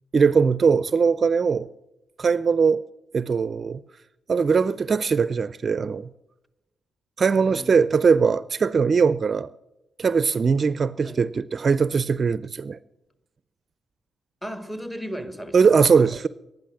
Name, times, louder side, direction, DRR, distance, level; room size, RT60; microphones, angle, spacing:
voice 1, 0.1-1.7 2.2-2.8 3.1-3.8 4.3-6.1 7.2-9.5 10.0-12.8 15.5-16.3, right 5 dB, 45° right, 0.4 m, -20 dB
voice 2, 7.4-7.7 11.0-11.3 14.4-16.2, equal, 10° left, 1.6 m, -36 dB
12.0 x 10.5 x 7.6 m
supercardioid pair, 65°, 0 cm